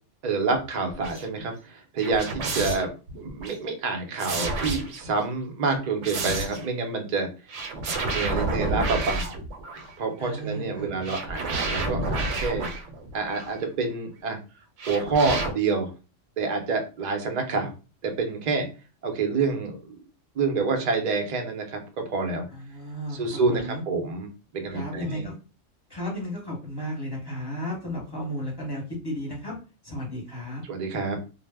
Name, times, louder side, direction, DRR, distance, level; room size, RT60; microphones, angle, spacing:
voice 1, 0.2-7.7 7.9-9.4 10.0-12.7 13.1-14.4 14.9-15.9 16.4-17.7 18.0-18.7 19.0-20.0 20.3-22.5 23.1-24.3 24.5-25.3 30.7-31.2, right 4 dB, 55° right, 4 dB, 0.5 m, -28 dB
sound 1, 0.9-1.3 2.0-3.6 4.2-5.2 5.7-6.7 7.5-10.0 11.0-13.6 14.8-15.5, right 2 dB, 75° right, 0.9 m, -30 dB
voice 2, 10.2-11.2 22.5-23.8 24.7-25.3 25.9-29.5 29.8-30.6, equal, 25° left, -3 dB, 0.7 m, -34 dB
2.0 x 2.0 x 3.3 m, 0.33 s
omnidirectional pair, 1.3 m